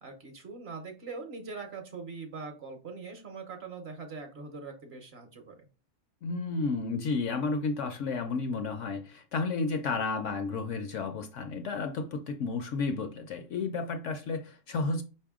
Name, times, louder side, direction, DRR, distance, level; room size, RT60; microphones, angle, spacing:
voice 1, 0.0-5.5, right 4 dB, 55° right, 0.9 m, -42 dB
voice 2, 6.2-15.0, left 4 dB, 65° left, 0.8 m, -32 dB
5.3 x 2.8 x 3.5 m
omnidirectional pair, 1.5 m